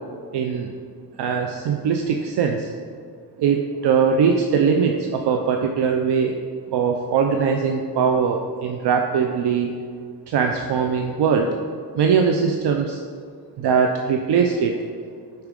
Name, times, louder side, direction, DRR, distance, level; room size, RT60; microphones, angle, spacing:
voice 1, 0.3-0.7 1.2-2.7 3.4-6.3 6.7-9.7 10.3-11.5 12.0-13.0 13.6-14.8, right 6 dB, 80° right, 3 dB, 0.8 m, -21 dB
12.0 x 4.6 x 5.3 m, 2.1 s
cardioid pair, 80°, 40 cm